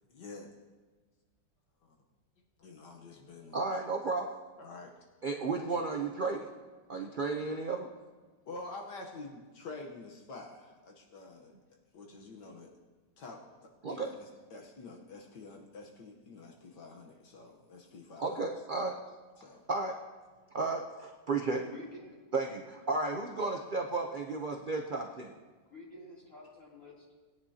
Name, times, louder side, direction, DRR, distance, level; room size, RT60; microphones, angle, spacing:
voice 1, 0.1-0.5 1.8-2.0 2.6-3.6 4.6-5.0 6.9-7.1 8.4-12.7 13.2-18.4 19.4-19.6, left 3 dB, 70° left, 1 dB, 1.7 m, -48 dB
voice 2, 3.5-4.3 5.2-6.5 6.9-7.9 13.8-14.1 18.2-19.0 19.7-20.0 20.5-21.6 22.3-25.3, right 3 dB, 50° right, 2 dB, 0.5 m, -33 dB
voice 3, 21.6-22.2 25.7-27.1, left 2 dB, 45° left, -5 dB, 3.6 m, -49 dB
20.5 x 9.8 x 2.8 m, 1.3 s
omnidirectional pair, 1.9 m